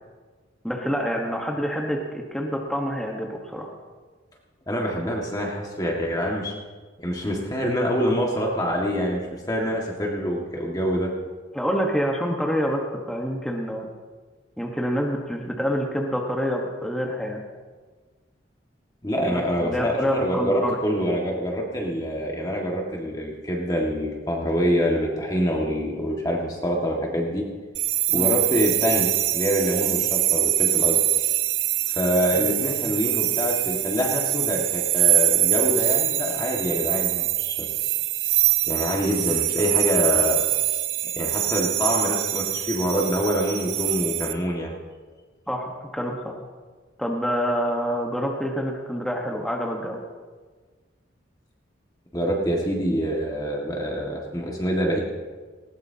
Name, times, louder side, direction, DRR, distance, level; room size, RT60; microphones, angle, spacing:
voice 1, 0.6-3.7 11.5-13.9 14.6-17.4 19.3-20.8 28.1-28.3 32.3-32.5 45.5-46.4 47.0-50.0, equal, 5° left, 0 dB, 1.2 m, -27 dB
voice 2, 4.7-6.5 7.0-9.2 9.5-11.1 19.0-27.4 28.1-31.0 31.9-37.7 38.6-40.4 41.2-44.7 52.1-55.0, equal, 20° left, -1 dB, 1.8 m, -25 dB
sound 1, 27.7-44.3, right 14 dB, 70° right, 0.8 m, -24 dB
19.0 x 18.0 x 2.8 m, 1.4 s
head